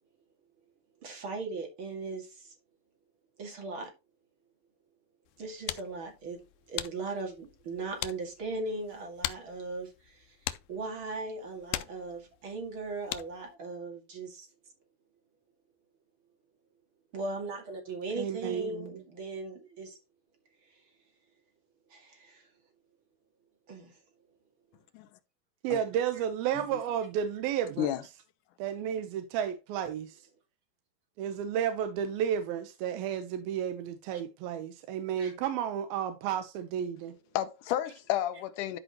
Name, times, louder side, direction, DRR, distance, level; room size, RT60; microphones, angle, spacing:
voice 1, 1.0-2.5 3.4-3.9 5.4-10.4 10.7-14.5 17.1-20.0 21.9-22.5 23.7-24.0 35.2-35.3, right 3 dB, 40° right, 2.6 m, -38 dB
sound 1, 5.3-13.5, left 15 dB, 90° left, 2.4 m, -42 dB
voice 2, 18.2-19.0 25.6-27.9 28.6-30.2 31.2-37.2, right 9 dB, 85° right, 2.7 m, -32 dB
voice 3, 37.4-38.8, left 12 dB, 75° left, 2.2 m, -31 dB
12.0 x 5.3 x 3.0 m
omnidirectional pair, 4.2 m